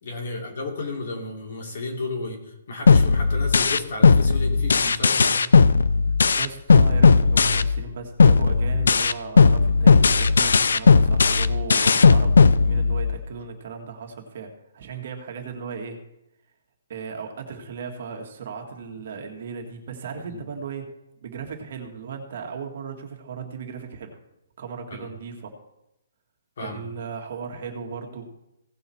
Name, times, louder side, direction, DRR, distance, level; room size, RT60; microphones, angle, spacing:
voice 1, 0.0-5.5 20.3-20.4 24.9-25.1 26.6-26.8, left 3 dB, 55° left, 1 dB, 2.9 m, -33 dB
sound 1, 2.9-7.9 8.2-13.2, left 5 dB, 85° left, 0.5 m, -16 dB
voice 2, 6.4-16.0 16.9-20.9 21.2-24.2 24.6-25.5 26.6-28.3, right 6 dB, 45° right, 3 dB, 1.7 m, -36 dB
17.0 x 5.9 x 4.2 m, 0.88 s
hypercardioid pair, 170°, 0 cm